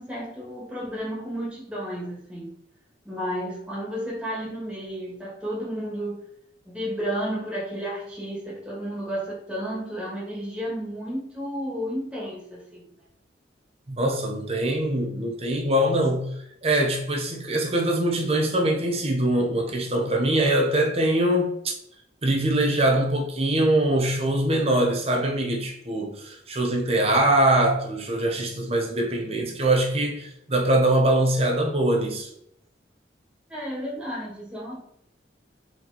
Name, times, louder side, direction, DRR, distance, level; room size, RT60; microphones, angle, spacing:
voice 1, 0.0-2.5 3.0-6.2 6.6-12.9 33.5-34.8, equal, 5° right, 2.0 m, -32 dB
voice 2, 13.9-16.3 16.6-21.5 22.2-32.3, right 1 dB, 35° right, 1.1 m, -23 dB
4.8 x 4.5 x 4.2 m
head